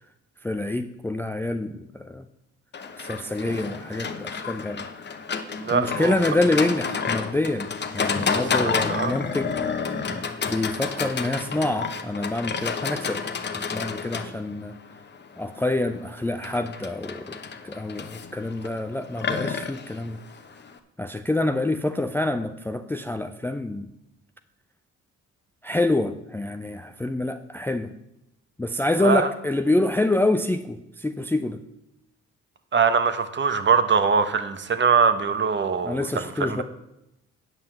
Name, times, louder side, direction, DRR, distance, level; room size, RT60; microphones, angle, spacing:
voice 1, 0.4-2.2 3.0-4.9 5.7-7.7 7.9-9.5 10.5-13.2 13.5-14.7 15.4-17.4 17.6-20.2 21.0-23.9 25.6-27.9 28.6-31.6 35.8-36.6, left 2 dB, 5° left, 9 dB, 0.4 m, -26 dB
Livestock farm animals working animals, 2.7-20.8, left 5 dB, 35° left, 1.0 m, -30 dB
voice 2, 5.6-6.2 8.3-9.1 29.0-29.3 32.7-36.6, right 6 dB, 40° right, 10 dB, 1.1 m, -23 dB
9.1 x 5.6 x 7.7 m, 0.86 s
cardioid pair, 90°, 30 cm